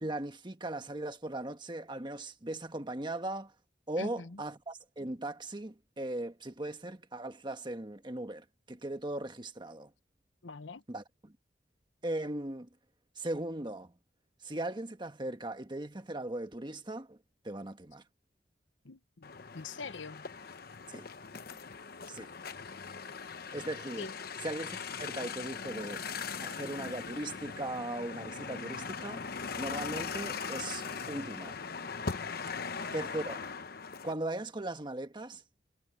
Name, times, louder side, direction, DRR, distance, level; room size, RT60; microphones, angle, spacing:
voice 1, 0.0-3.5 3.9-9.9 10.9-11.3 12.0-12.7 13.2-13.9 14.4-17.2 17.4-18.0 20.9-21.4 22.1-22.3 23.5-24.1 24.4-26.0 26.4-29.2 29.6-31.6 32.9-33.4 34.0-35.4, right 1 dB, 25° right, 1.4 m, -38 dB
voice 2, 4.0-4.4 10.4-10.8 18.8-20.2 24.0-24.1 32.5-33.0, left 3 dB, 85° left, 1.0 m, -44 dB
sound 1, 19.2-34.1, left 5 dB, 55° left, 0.9 m, -40 dB
head